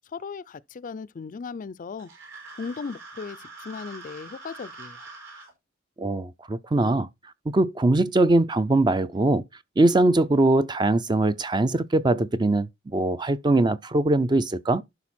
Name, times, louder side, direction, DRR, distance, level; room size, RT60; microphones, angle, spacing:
voice 1, 0.1-2.1 2.6-5.1, left 5 dB, 40° left, 0.4 m, -37 dB
sound 1, 2.0-5.5, right 3 dB, 65° right, 5.4 m, -44 dB
voice 2, 6.0-7.1 7.5-9.4 9.8-14.8, right 2 dB, 20° right, 0.4 m, -22 dB
11.5 x 4.5 x 4.3 m
head